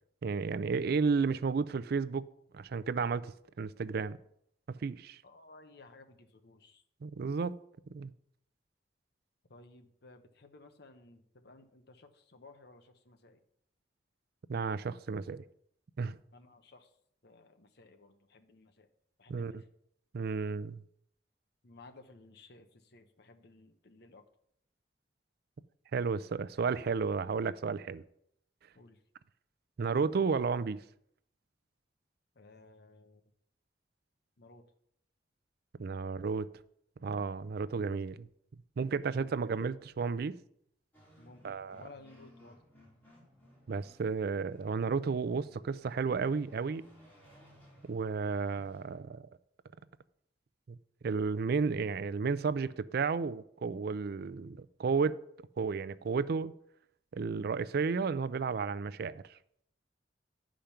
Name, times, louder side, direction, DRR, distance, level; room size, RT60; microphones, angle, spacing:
voice 1, 0.2-2.2 2.5-3.3 3.6-4.2 4.8-5.2 7.0-7.5 7.9-8.1 14.5-15.4 16.0-16.2 19.3-19.6 20.1-20.8 25.9-28.0 29.8-30.8 35.8-36.5 37.0-38.3 38.8-40.4 41.4-41.8 43.7-46.8 47.8-49.2 50.7-50.8 51.0-55.2 55.6-56.5 57.1-59.2, right 5 dB, 60° right, 0.4 m, -32 dB
voice 2, 5.2-6.8 9.5-13.4 16.3-16.9 17.2-18.9 19.2-19.7 21.6-24.3 28.7-29.0 32.3-33.2 34.4-34.7 39.0-39.2 41.2-41.4 41.7-42.6, left 3 dB, 65° left, 1.0 m, -57 dB
sound 1, 40.9-49.0, equal, 10° left, 4.0 m, -60 dB
10.5 x 5.1 x 5.7 m
head